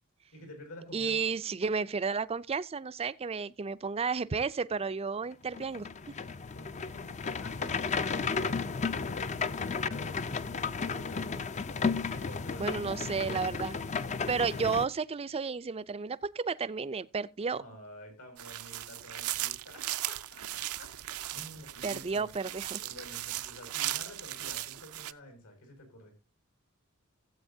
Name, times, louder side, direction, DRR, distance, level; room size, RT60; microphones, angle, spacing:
voice 1, 0.3-1.3 6.5-11.7 12.1-13.5 17.6-20.9 21.3-22.3 22.7-26.1, left 1 dB, 85° left, 5.9 m, -49 dB
voice 2, 0.9-5.9 12.6-13.7 14.3-17.6 21.8-22.8, right 5 dB, 25° right, 0.4 m, -32 dB
sound 1, 5.5-14.9, left 5 dB, 30° left, 0.5 m, -33 dB
sound 2, 18.4-25.1, right 15 dB, 75° right, 0.6 m, -37 dB
17.0 x 7.9 x 2.7 m
head